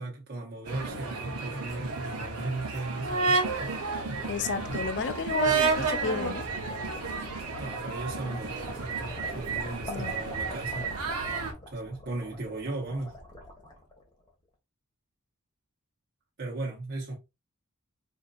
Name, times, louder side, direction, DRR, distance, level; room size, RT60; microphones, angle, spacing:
voice 1, 0.0-3.4 7.6-10.9 11.7-13.1 16.4-17.1, right 2 dB, 50° right, 1.0 m, -36 dB
sound 1, 0.7-11.5, right 4 dB, 80° right, 0.9 m, -31 dB
sound 2, 3.4-14.3, left 1 dB, 20° left, 1.1 m, -44 dB
voice 2, 4.3-6.5 9.9-10.2, left 5 dB, 55° left, 0.5 m, -32 dB
4.2 x 2.7 x 2.5 m
head